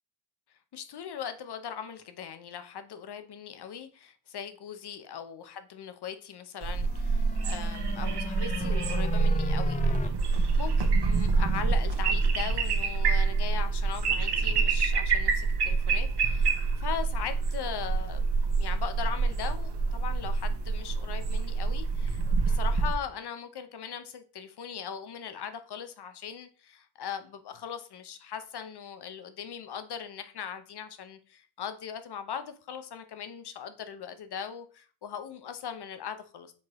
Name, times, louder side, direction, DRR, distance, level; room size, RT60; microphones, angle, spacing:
voice 1, 0.7-16.5 16.8-18.2 18.6-36.5, left 8 dB, 60° left, 0.9 m, -39 dB
sound 1, 6.6-22.9, right 4 dB, 60° right, 1.1 m, -27 dB
sound 2, 6.7-10.1, left 4 dB, 20° left, 0.4 m, -36 dB
7.2 x 4.5 x 3.1 m
wide cardioid pair, 130°, 45 cm